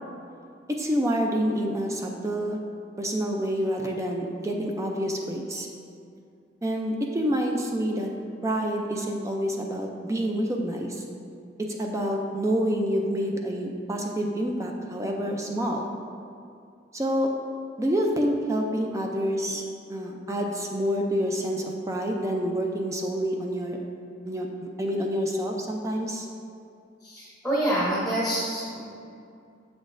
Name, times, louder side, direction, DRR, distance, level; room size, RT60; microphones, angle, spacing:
voice 1, 0.8-2.6 3.0-5.7 6.6-8.1 8.4-11.0 11.7-15.8 16.9-17.3 17.8-19.6 19.9-23.8 24.3-24.5 24.8-26.3, equal, 15° right, 1 dB, 0.4 m, -27 dB
voice 2, 27.0-28.9, right 1 dB, 5° left, -6 dB, 0.8 m, -27 dB
7.2 x 6.0 x 2.5 m, 2.4 s
head